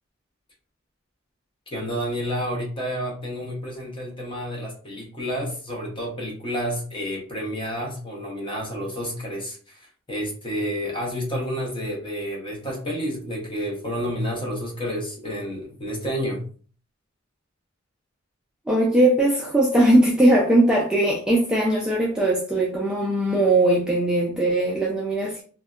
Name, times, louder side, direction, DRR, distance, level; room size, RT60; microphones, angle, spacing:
voice 1, 1.7-16.4, equal, 25° left, -1 dB, 0.8 m, -30 dB
voice 2, 18.7-25.4, right 1 dB, 5° right, -4 dB, 0.3 m, -20 dB
2.6 x 2.1 x 2.3 m, 0.42 s
head